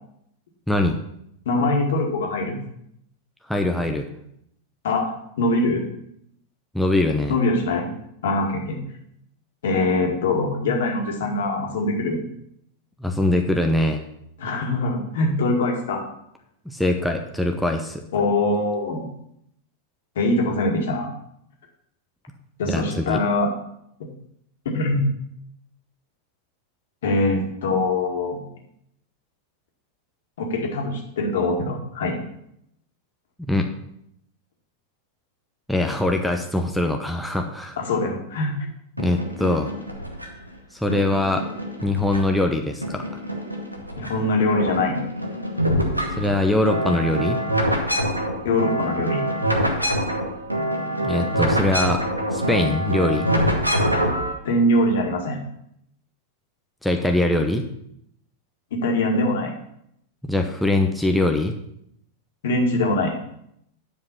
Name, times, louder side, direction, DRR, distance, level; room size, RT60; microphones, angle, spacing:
voice 1, 0.7-1.0 3.5-4.1 6.7-7.4 13.0-14.0 16.7-18.0 22.7-23.2 33.4-33.7 35.7-37.8 39.0-39.7 40.7-41.4 41.8-43.0 46.2-47.4 51.0-53.3 56.8-57.7 60.2-61.5, left 1 dB, ahead, 2 dB, 0.8 m, -22 dB
voice 2, 1.5-2.6 4.8-5.1 5.4-5.9 7.3-7.9 8.2-8.8 9.6-12.2 14.4-16.0 18.1-19.1 20.2-21.1 22.6-23.5 24.7-25.0 27.0-28.4 30.4-32.1 37.8-38.5 44.0-45.0 48.4-49.2 54.4-55.4 58.7-59.5 62.4-63.1, left 2 dB, 60° left, 1 dB, 2.0 m, -23 dB
sound 1, 39.0-40.5 40.9-42.5 42.8-44.1 44.4-54.3, equal, 90° right, 1.2 m, -25 dB
9.5 x 5.3 x 5.8 m, 0.75 s
figure-of-eight pair, 90°, 0 cm